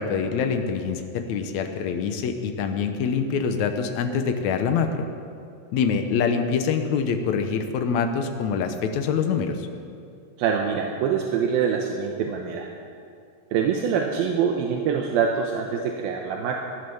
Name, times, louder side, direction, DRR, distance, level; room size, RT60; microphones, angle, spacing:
voice 1, 0.0-5.1 5.7-9.7, left 6 dB, 75° left, 6 dB, 1.7 m, -25 dB
voice 2, 10.4-12.7 13.5-16.7, right 7 dB, 75° right, 2 dB, 2.7 m, -25 dB
18.0 x 11.0 x 7.0 m, 2.5 s
omnidirectional pair, 4.4 m